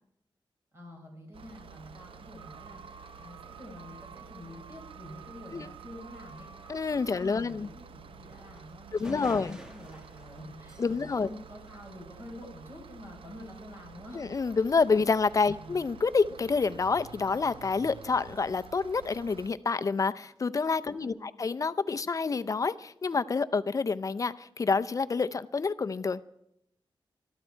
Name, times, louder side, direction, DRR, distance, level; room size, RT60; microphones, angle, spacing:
voice 1, 0.7-6.9 7.1-14.3 15.5-15.8 20.9-21.2, left 1 dB, 30° right, 0 dB, 5.5 m, -48 dB
sound 1, 1.3-19.5, right 6 dB, 90° right, 0.6 m, -50 dB
sound 2, 2.4-7.4, right 7 dB, 65° right, 0.9 m, -51 dB
voice 2, 6.7-7.7 9.0-9.6 10.8-11.3 14.1-26.3, left 4 dB, 40° left, 14 dB, 0.5 m, -28 dB
sound 3, 8.6-8.7 9.0-12.4, equal, 10° right, 1.3 m, -49 dB
22.0 x 13.0 x 4.5 m, 0.77 s
wide cardioid pair, 150°, 9 cm